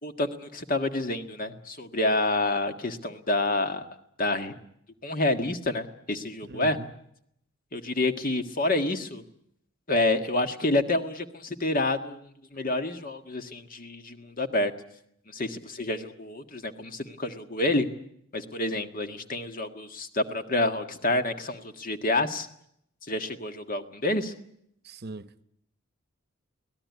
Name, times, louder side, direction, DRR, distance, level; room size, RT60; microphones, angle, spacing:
voice 1, 0.0-3.9 4.2-4.5 5.0-6.8 7.7-9.2 9.9-14.7 15.3-17.9 18.3-22.5 23.1-24.3, left 2 dB, 40° left, 1.7 m, -28 dB
voice 2, 6.4-6.9 24.8-25.4, right 3 dB, 50° right, 1.0 m, -41 dB
24.5 x 18.0 x 9.6 m
head